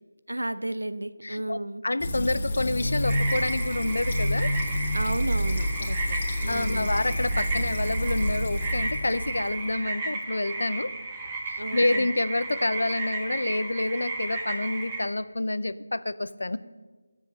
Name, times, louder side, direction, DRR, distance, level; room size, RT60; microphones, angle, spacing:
voice 1, 0.3-1.8 4.9-7.0 11.6-12.1, right 1 dB, 85° right, 12 dB, 0.7 m, -33 dB
voice 2, 1.2-4.5 6.5-10.9 11.5-16.6, left 2 dB, 70° left, 14 dB, 0.6 m, -28 dB
Fill (with liquid), 2.0-9.7, equal, 35° left, 1.6 m, -28 dB
sound 1, 3.0-15.0, right 2 dB, 15° right, 1.6 m, -34 dB
14.5 x 7.5 x 6.6 m, 1.3 s
figure-of-eight pair, 165°, 0 cm